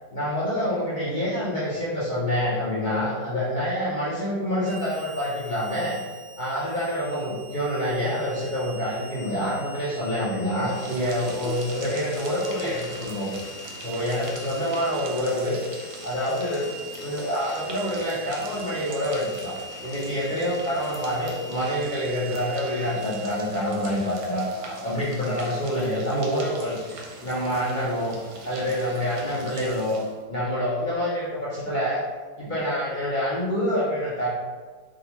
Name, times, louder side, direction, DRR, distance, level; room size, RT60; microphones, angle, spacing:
voice 1, 0.1-5.9 6.4-13.3 13.8-15.6 16.0-16.7 17.0-19.5 19.8-28.1 28.4-30.0 30.3-32.0 32.4-34.3, equal, 70° left, -9 dB, 0.4 m, -27 dB
Harmonica, 4.6-23.4, right 2 dB, 25° left, 0.7 m, -43 dB
sound 1, 10.6-30.2, right 3 dB, 70° right, 1.0 m, -42 dB
3.7 x 2.3 x 2.9 m, 1.4 s
omnidirectional pair, 1.9 m